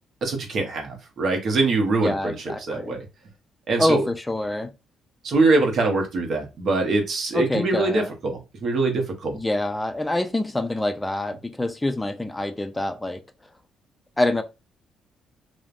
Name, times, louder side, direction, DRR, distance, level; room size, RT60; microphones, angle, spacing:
voice 1, 0.2-2.3 2.7-3.0 3.7-4.0 5.2-9.4, right 3 dB, 60° right, 0.8 m, -23 dB
voice 2, 2.0-3.0 3.8-4.7 7.3-8.1 9.3-13.2 14.2-14.4, left 1 dB, 10° left, 0.3 m, -26 dB
3.1 x 2.0 x 2.4 m
cardioid pair, 90°, 0 cm